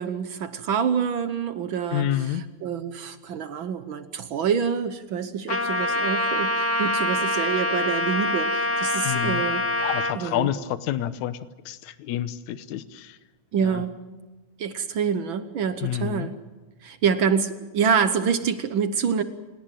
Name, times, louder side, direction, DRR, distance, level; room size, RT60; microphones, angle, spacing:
voice 1, 0.0-9.7 10.1-10.5 13.5-14.0 14.6-16.3 16.8-19.2, right 7 dB, 65° right, 11 dB, 1.2 m, -26 dB
voice 2, 1.9-2.4 9.0-9.4 9.8-11.4 11.7-13.2 13.6-13.8 15.8-16.3, left 12 dB, 80° left, 13 dB, 2.2 m, -28 dB
Trumpet, 5.5-10.2, left 1 dB, 40° left, 1.2 m, -25 dB
28.5 x 17.5 x 7.6 m, 1.2 s
omnidirectional pair, 3.4 m